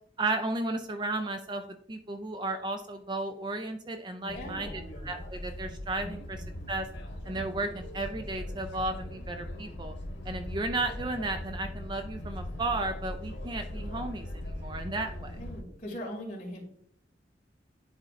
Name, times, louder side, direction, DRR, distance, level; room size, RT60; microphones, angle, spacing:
voice 1, 0.2-1.6 1.9-4.7 5.0-6.4 6.7-6.9 7.3-9.9 10.3-15.4, right 2 dB, 25° right, 6 dB, 0.4 m, -34 dB
voice 2, 4.2-4.8 6.0-6.1 15.4-16.6, equal, 40° left, -3 dB, 2.3 m, -40 dB
sound 1, 4.3-15.6, left 1 dB, 85° left, 1.3 m, -40 dB
10.5 x 4.0 x 2.5 m, 0.68 s
head